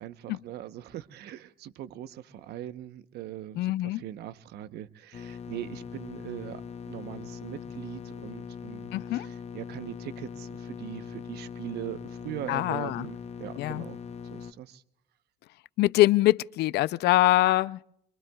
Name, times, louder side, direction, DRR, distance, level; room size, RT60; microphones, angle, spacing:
voice 1, 0.0-14.0 14.3-14.8, right 12 dB, 75° right, 0.9 m, -41 dB
voice 2, 3.5-4.0 8.9-9.3 12.5-13.1 13.6-13.9 15.8-17.8, left 16 dB, 75° left, 0.5 m, -24 dB
sound 1, 5.1-14.5, left 6 dB, 40° left, 0.9 m, -41 dB
25.0 x 23.5 x 2.3 m
cardioid pair, 110°, 17 cm